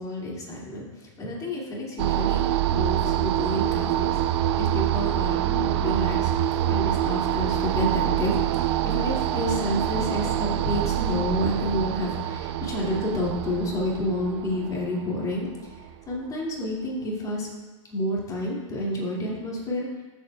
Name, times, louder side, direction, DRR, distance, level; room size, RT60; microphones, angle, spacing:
voice 1, 0.0-2.4 2.7-6.3 6.7-15.7 16.1-17.5 17.9-19.9, left 1 dB, 20° left, -4 dB, 2.3 m, -29 dB
sound 1, 2.0-16.1, right 12 dB, 55° right, 0.5 m, -26 dB
14.0 x 7.2 x 2.3 m, 1.2 s
hypercardioid pair, 120°, 17 cm